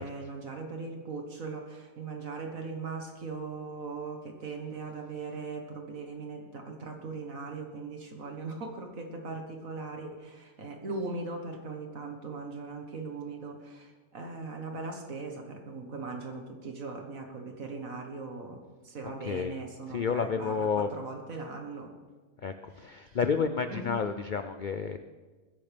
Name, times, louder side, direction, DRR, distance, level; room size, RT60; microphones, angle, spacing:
voice 1, 0.0-21.9 22.7-23.2 23.7-24.0, right 3 dB, 65° right, 3 dB, 1.8 m, -39 dB
voice 2, 19.2-19.6 19.9-20.9 22.4-25.0, left 6 dB, 70° left, 8 dB, 0.4 m, -30 dB
20.5 x 11.0 x 3.5 m, 1.4 s
omnidirectional pair, 1.5 m